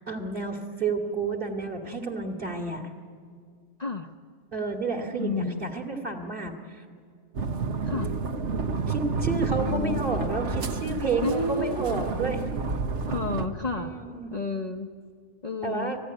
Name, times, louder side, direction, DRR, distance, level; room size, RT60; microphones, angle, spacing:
voice 1, 0.0-2.9 4.5-6.6 8.9-12.4 13.7-14.3 15.6-16.0, right 3 dB, 45° right, 3 dB, 2.6 m, -30 dB
voice 2, 5.2-5.6 7.8-8.2 9.6-10.1 11.2-12.0 13.1-13.9 14.3-14.9 15.4-16.0, left 3 dB, 35° left, 3 dB, 0.9 m, -31 dB
sound 1, 7.3-13.5, right 4 dB, 70° right, 1.5 m, -30 dB
29.5 x 20.0 x 9.9 m, 2.1 s
omnidirectional pair, 1.3 m